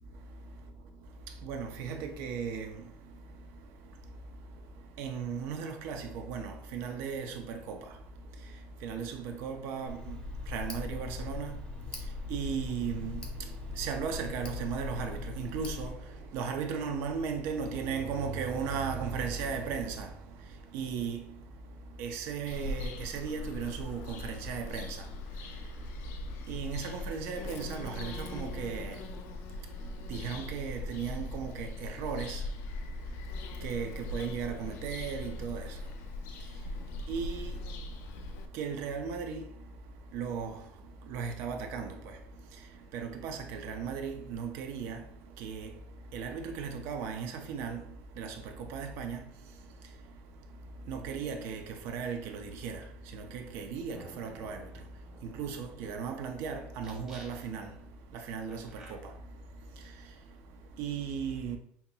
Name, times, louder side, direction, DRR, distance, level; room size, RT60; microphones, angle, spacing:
voice 1, 0.1-61.6, right 6 dB, 65° right, 0.6 m, -38 dB
Tick, 9.9-15.9, left 3 dB, 20° left, 0.7 m, -40 dB
Bird vocalization bird call bird song, 22.5-38.5, left 2 dB, 65° left, 0.4 m, -40 dB
sound 1, 53.9-56.3 56.8-57.7 58.5-58.9, right 2 dB, 15° right, 1.1 m, -53 dB
5.6 x 2.8 x 2.2 m
cardioid pair, 160°, 5 cm